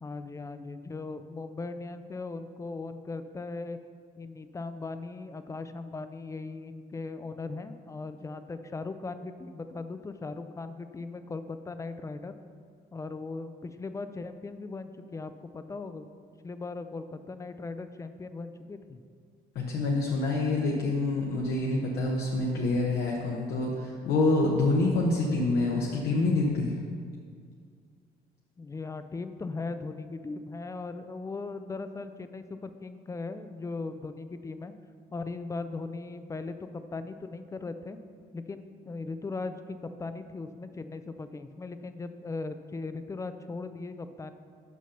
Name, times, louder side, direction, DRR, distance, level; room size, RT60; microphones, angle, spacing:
voice 1, 0.0-3.8 4.2-12.4 12.9-16.1 16.4-19.0 28.6-34.7 35.1-38.0 38.3-44.3, left 3 dB, 20° left, 10 dB, 0.4 m, -38 dB
voice 2, 19.5-26.7, left 2 dB, 70° left, -3 dB, 1.0 m, -26 dB
6.2 x 5.6 x 7.0 m, 2.1 s
cardioid pair, 110°, 17 cm